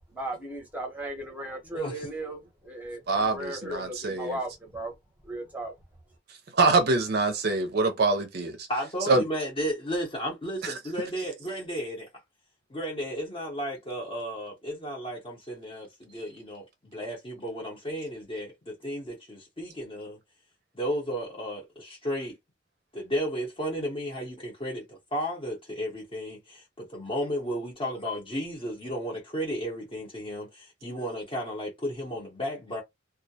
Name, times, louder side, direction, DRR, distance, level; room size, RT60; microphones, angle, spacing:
voice 1, 0.1-4.9 5.2-5.7, right 1 dB, 10° right, 0.7 m, -36 dB
voice 2, 1.6-2.1 8.7-12.1 12.7-20.2 20.7-22.4 22.9-32.8, equal, 25° left, 0.7 m, -33 dB
voice 3, 3.1-4.4 6.6-8.7 9.1-9.2 10.6-10.7, right 3 dB, 50° right, 0.5 m, -24 dB
2.2 x 2.1 x 2.7 m
head